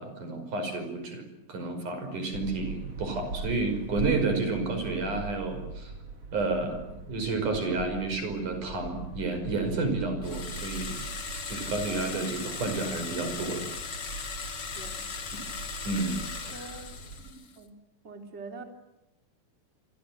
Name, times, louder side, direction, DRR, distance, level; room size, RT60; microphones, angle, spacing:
voice 1, 0.0-5.9 6.3-11.0 11.5-13.6 15.9-16.8 17.3-17.4, right 3 dB, 65° right, 7 dB, 6.8 m, -31 dB
sound 1, 2.3-17.2, right 4 dB, 45° right, 5.2 m, -41 dB
sound 2, 10.2-17.6, left 5 dB, 40° left, 2.0 m, -38 dB
voice 2, 14.7-15.1 16.5-17.0 17.6-17.7 18.0-18.6, right 3 dB, 20° right, 4 dB, 3.3 m, -43 dB
28.5 x 25.5 x 7.7 m, 0.91 s
omnidirectional pair, 4.0 m